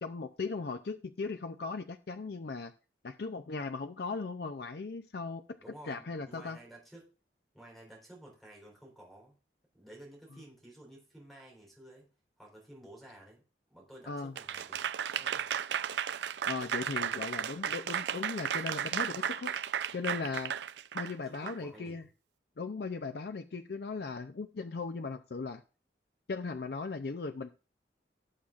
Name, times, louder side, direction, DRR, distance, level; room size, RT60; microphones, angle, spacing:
voice 1, 0.0-2.7 3.0-5.4 5.9-6.6 14.1-14.3 16.4-20.5 20.9-22.0 22.6-25.6 26.3-27.5, left 4 dB, 60° left, 9 dB, 0.5 m, -38 dB
voice 2, 5.6-7.1 7.5-9.3 9.7-12.1 12.4-13.4 13.7-15.5 17.5-17.8 20.2-20.4 21.2-22.0, right 1 dB, ahead, -1 dB, 3.7 m, -53 dB
Applause / Crowd, 14.4-21.6, right 8 dB, 75° right, 0.4 m, -34 dB
17.5 x 7.2 x 2.5 m, 0.35 s
head